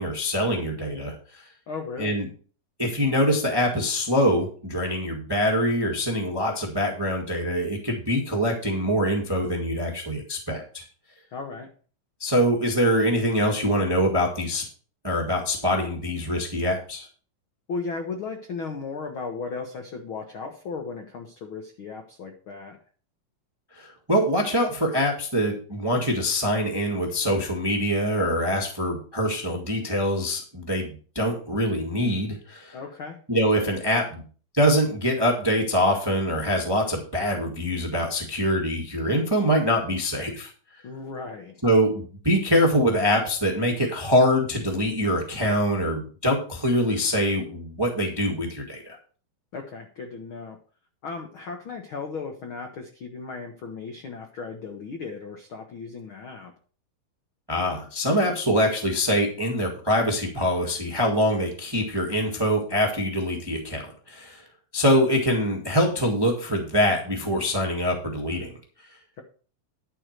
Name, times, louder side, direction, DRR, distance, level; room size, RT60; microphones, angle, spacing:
voice 1, 0.0-1.4 2.0-2.3 2.8-10.8 12.2-14.6 15.0-17.1 23.7-32.8 33.3-34.2 34.5-40.5 41.6-49.0 57.5-64.4 64.7-68.6, equal, 20° right, 1 dB, 0.7 m, -24 dB
voice 2, 1.7-2.2 11.3-11.7 17.7-22.8 32.7-33.2 40.8-41.6 49.5-50.6 51.0-56.5, left 4 dB, 80° left, 4 dB, 1.1 m, -36 dB
10.5 x 4.6 x 6.5 m, 0.41 s
omnidirectional pair, 4.0 m